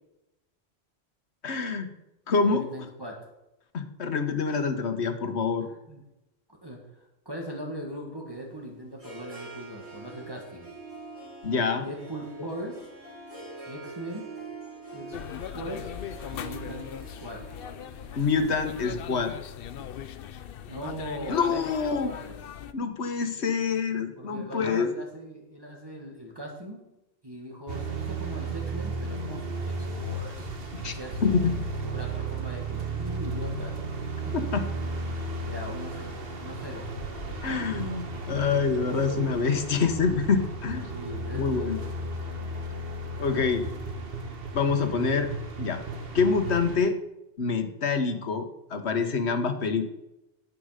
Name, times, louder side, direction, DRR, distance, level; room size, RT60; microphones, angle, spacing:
voice 1, 1.4-1.9 2.3-2.6 3.7-5.7 11.4-11.9 18.1-19.3 21.3-22.1 22.7-24.9 30.7-30.9 31.2-31.5 34.3-34.7 37.4-40.9 41.3-41.9 43.2-43.7 44.5-45.3 45.6-45.8 46.1-47.0 47.4-49.9, left 5 dB, 85° left, 8 dB, 1.4 m, -26 dB
voice 2, 2.4-3.3 5.9-6.0 6.6-10.7 11.8-12.9 13.7-14.3 14.9-15.2 15.5-15.9 16.3-17.5 20.7-22.4 23.4-23.6 24.2-26.8 27.2-30.5 30.8-34.4 35.4-36.9 40.9-41.9, equal, 20° right, -1 dB, 1.8 m, -40 dB
Harp, 8.3-20.5, right 3 dB, 90° right, 5.5 m, -45 dB
sound 1, 15.1-22.7, left 9 dB, 65° left, 0.8 m, -39 dB
sound 2, 27.7-46.8, right 2 dB, 60° right, 1.5 m, -34 dB
9.9 x 8.7 x 6.5 m, 0.92 s
omnidirectional pair, 1.1 m